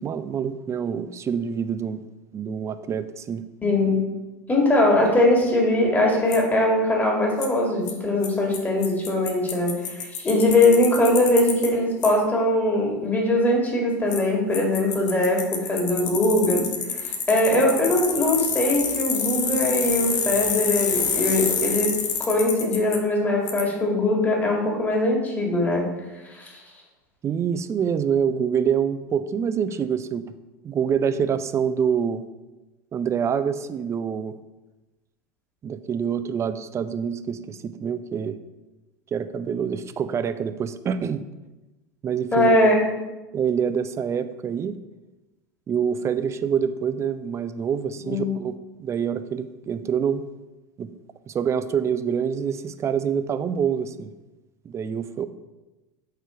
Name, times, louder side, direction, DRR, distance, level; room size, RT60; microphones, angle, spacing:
voice 1, 0.0-2.0 2.3-3.4 27.2-30.3 30.6-32.2 32.9-34.3 35.6-38.4 39.1-41.2 42.0-42.7 43.3-44.8 45.7-50.3 50.8-50.9 51.3-54.1 54.6-55.3, right 7 dB, 30° right, 12 dB, 0.5 m, -26 dB
voice 2, 3.6-4.0 4.5-21.9 22.2-25.9 26.3-26.6 42.3-42.8 48.0-48.3, left 1 dB, 20° left, -1 dB, 2.3 m, -21 dB
Bicycle, 6.3-6.4 7.4-7.5 7.9-8.0 8.2-8.3 8.5-8.6 8.8-11.7 12.0-12.1 14.1-14.2 14.5-23.0 23.5-23.6, left 6 dB, 70° left, 1.1 m, -27 dB
6.8 x 4.5 x 4.6 m, 1.1 s
hypercardioid pair, 85°, 10 cm